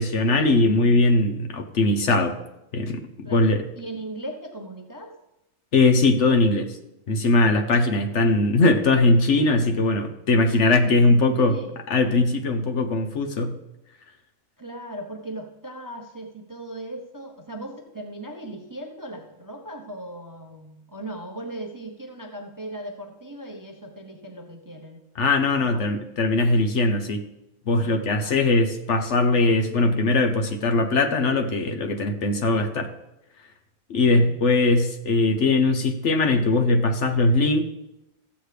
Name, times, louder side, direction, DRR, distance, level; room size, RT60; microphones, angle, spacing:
voice 1, 0.0-2.3 2.7-3.6 5.7-6.8 7.1-11.6 11.9-13.5 25.2-27.3 27.7-32.9 33.9-37.6, left 2 dB, 60° left, 6 dB, 1.1 m, -20 dB
voice 2, 3.2-5.1 10.5-10.9 11.3-11.8 14.6-25.0 25.6-25.8 27.8-28.4 34.2-34.4, right 1 dB, 20° right, 3 dB, 0.7 m, -38 dB
14.5 x 8.0 x 3.3 m, 0.88 s
omnidirectional pair, 1.4 m